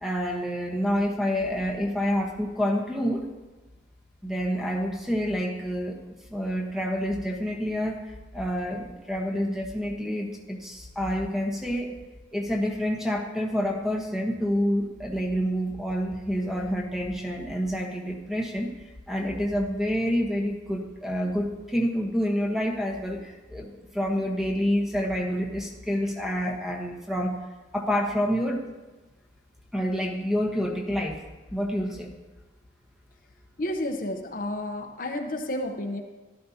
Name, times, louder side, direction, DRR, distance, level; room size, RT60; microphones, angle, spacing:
voice 1, 0.0-3.2 4.2-6.0 6.3-8.0 8.3-11.9 12.3-18.7 19.1-27.4 27.7-28.6 29.7-31.2 31.5-32.1, equal, ahead, 1 dB, 1.1 m, -28 dB
voice 2, 33.6-36.0, left 1 dB, 50° left, 4 dB, 0.8 m, -31 dB
13.0 x 12.0 x 2.8 m, 1.2 s
head